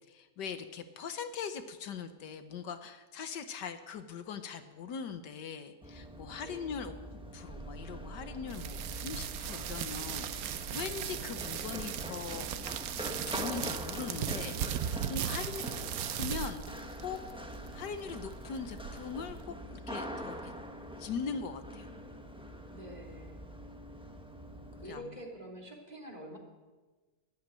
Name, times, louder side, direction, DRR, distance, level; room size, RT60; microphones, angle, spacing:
voice 1, 0.1-6.9 7.3-12.5 13.3-15.6 16.1-17.2 17.7-20.5 21.0-21.9 24.9-25.0, left 6 dB, 75° left, 9 dB, 1.6 m, -41 dB
Run, 5.8-24.9, equal, 5° right, 1.1 m, -44 dB
sound 1, 7.5-10.3, right 3 dB, 40° right, 0.5 m, -48 dB
sound 2, 8.5-19.5, right 10 dB, 65° right, 1.0 m, -38 dB
voice 2, 15.5-16.1 22.7-23.4 24.8-26.4, equal, 25° right, -1 dB, 2.8 m, -47 dB
12.5 x 12.0 x 9.1 m, 1.3 s
omnidirectional pair, 1.9 m